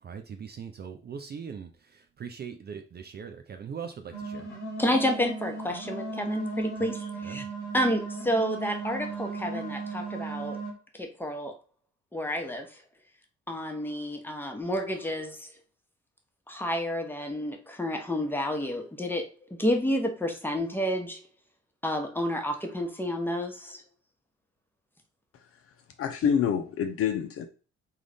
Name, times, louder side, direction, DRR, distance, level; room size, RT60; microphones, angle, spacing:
voice 1, 0.0-4.5 6.8-6.9 7.2-7.5, right 6 dB, 30° right, 0.5 m, -41 dB
sound 1, 4.1-10.7, right 3 dB, 85° left, 0.7 m, -36 dB
voice 2, 4.8-7.4 7.7-10.6 11.0-11.5 12.1-12.8 13.5-15.5 16.5-21.2 21.8-23.8, equal, 5° left, 1.0 m, -30 dB
voice 3, 26.0-27.4, left 8 dB, 40° left, 0.5 m, -26 dB
3.7 x 2.4 x 3.4 m
figure-of-eight pair, 45°, 34 cm